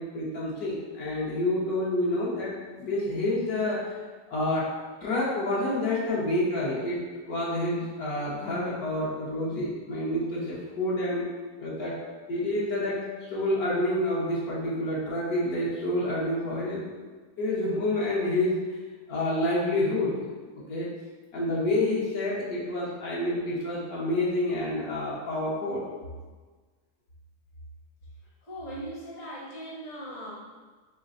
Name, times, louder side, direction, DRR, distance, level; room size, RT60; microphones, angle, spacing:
voice 1, 0.0-2.5 2.8-3.9 4.3-7.0 7.3-11.3 11.6-11.9 12.3-16.8 17.4-18.7 19.1-20.2 20.7-20.9 21.3-25.8, left 1 dB, 75° left, -7 dB, 1.6 m, -28 dB
voice 2, 28.4-30.3, right 1 dB, 60° left, -6 dB, 1.4 m, -39 dB
3.8 x 3.3 x 3.8 m, 1.4 s
omnidirectional pair, 1.6 m